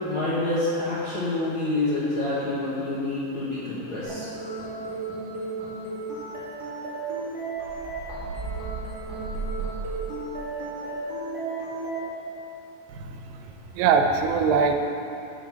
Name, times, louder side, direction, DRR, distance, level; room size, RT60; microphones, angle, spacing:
voice 1, 0.0-4.3, left 2 dB, 60° left, -10 dB, 1.3 m, -27 dB
sound 1, 4.0-12.1, right 3 dB, 35° right, 1.9 m, -34 dB
sound 2, 7.6-10.3, right 4 dB, 40° left, 2.4 m, -35 dB
voice 2, 12.9-14.7, right 5 dB, 90° right, 5 dB, 2.4 m, -23 dB
7.1 x 4.6 x 7.0 m, 3.0 s
omnidirectional pair, 4.0 m